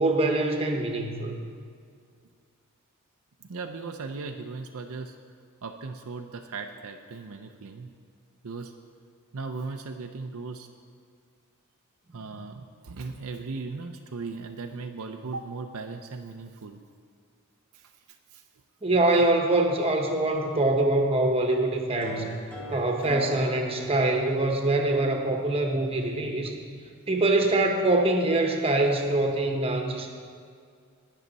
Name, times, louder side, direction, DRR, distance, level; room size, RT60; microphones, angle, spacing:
voice 1, 0.0-1.3 18.8-22.3 22.7-26.5 27.1-30.1, right 2 dB, 25° right, 3 dB, 1.1 m, -24 dB
voice 2, 3.4-5.2 5.6-7.9 8.4-8.7 9.3-10.7 12.1-16.8 17.7-18.4, right 4 dB, 70° right, 4 dB, 0.6 m, -37 dB
sound 1, 22.0-27.0, right 2 dB, 5° left, 2.2 m, -42 dB
18.5 x 6.4 x 4.1 m, 2.1 s
head